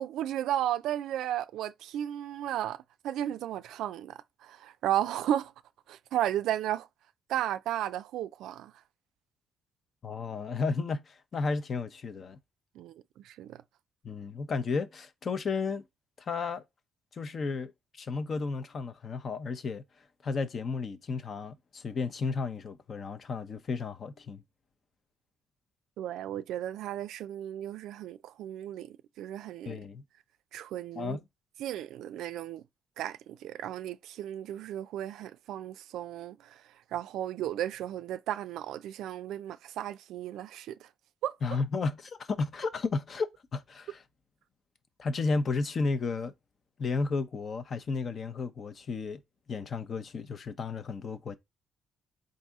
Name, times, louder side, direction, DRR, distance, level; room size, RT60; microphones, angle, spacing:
voice 1, 0.0-5.5 5.9-6.9 7.3-8.7 12.8-13.6 26.0-29.8 30.5-31.2 31.6-32.6 33.0-36.6 36.9-40.9 41.2-41.4, right 12 dB, 85° right, 0.3 m, -34 dB
voice 2, 10.0-12.4 14.0-15.8 16.2-16.6 17.1-24.4 29.7-30.0 30.9-31.2 41.4-44.0 45.0-46.3 46.8-49.2 49.5-51.4, left 4 dB, 45° left, 0.6 m, -33 dB
4.1 x 2.6 x 3.6 m
cardioid pair, 90°, 0 cm